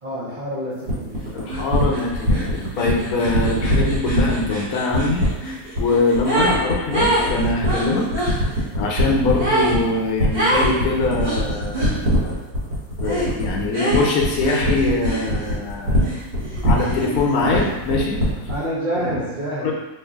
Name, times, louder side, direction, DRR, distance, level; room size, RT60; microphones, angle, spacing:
voice 1, 0.0-1.5 18.5-19.7, right 1 dB, 60° right, -8 dB, 0.5 m, -28 dB
sound 1, 0.9-18.6, equal, 80° right, 1.5 m, -22 dB
voice 2, 1.3-8.5 8.7-12.4 13.0-16.1 16.6-18.2 19.0-19.2 19.6-19.7, left 3 dB, 75° left, -1 dB, 1.1 m, -23 dB
sound 2, 1.5-1.6 1.9-6.6 6.9-8.4 9.4-9.8 10.3-10.7 11.2-11.9 13.0-13.3 13.7-15.6 16.0-17.4, right 1 dB, 35° right, 1.0 m, -26 dB
3.0 x 2.5 x 3.4 m, 1.1 s
omnidirectional pair, 1.6 m